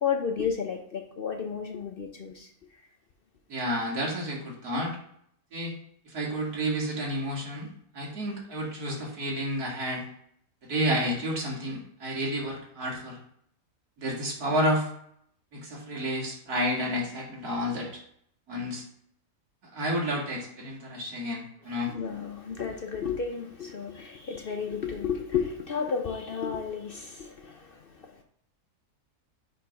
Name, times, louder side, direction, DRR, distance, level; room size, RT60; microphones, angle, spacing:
voice 1, 0.0-2.5 21.9-28.2, left 6 dB, 60° left, 0.6 m, -32 dB
voice 2, 3.5-5.0 5.5-5.7 6.1-7.7 7.9-10.0 10.7-13.2 14.0-14.9 15.6-17.9 18.5-18.8 19.7-21.9, equal, 80° right, 2.4 m, -30 dB
6.5 x 3.4 x 5.1 m
omnidirectional pair, 1.6 m